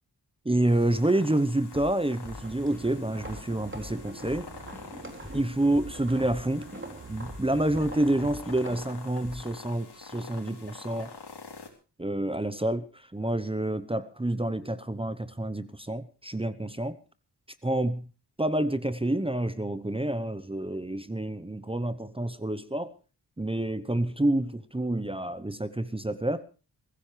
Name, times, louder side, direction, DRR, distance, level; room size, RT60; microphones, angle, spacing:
voice 1, 0.4-4.5 5.3-6.7 7.1-11.1 12.0-17.0 17.6-18.1 18.4-22.9 23.4-26.4, right 1 dB, 15° right, 13 dB, 0.9 m, -28 dB
sound 1, 0.7-11.7, left 4 dB, 70° left, 3.6 m, -47 dB
Drum kit / Drum, 1.7-2.0 2.2-3.0 3.2-3.5 3.7-6.9 7.2-8.5 8.7-8.9 9.2-9.6, left 2 dB, 5° left, 3.4 m, -44 dB
sound 2, 2.4-8.8, right 2 dB, 30° right, 3.7 m, -44 dB
22.0 x 15.0 x 3.3 m, 0.35 s
wide cardioid pair, 110°, 41 cm